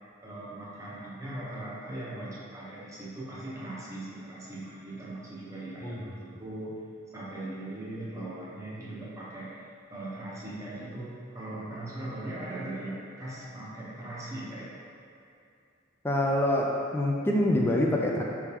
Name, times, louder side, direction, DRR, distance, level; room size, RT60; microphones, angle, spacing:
voice 1, 0.2-6.7 7.1-14.7, right 1 dB, 15° right, -8 dB, 0.9 m, -39 dB
voice 2, 16.0-18.2, left 1 dB, 10° left, -2 dB, 0.4 m, -26 dB
4.8 x 3.6 x 2.9 m, 2.5 s
head